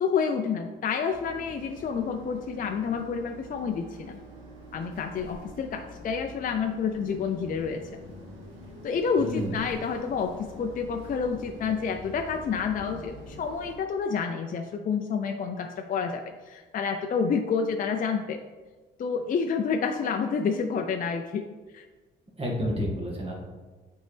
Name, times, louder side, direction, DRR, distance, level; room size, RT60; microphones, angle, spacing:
voice 1, 0.0-4.2 4.7-7.8 8.8-18.4 19.0-21.5 21.7-21.9, left 6 dB, 45° left, 5 dB, 0.5 m, -29 dB
sound 1, 1.1-13.8, equal, 85° right, 1.6 m, -46 dB
voice 2, 9.2-9.6 22.4-23.3, left 1 dB, 30° right, -2 dB, 1.9 m, -30 dB
7.9 x 4.5 x 3.3 m, 1.3 s
cardioid pair, 90°, 20 cm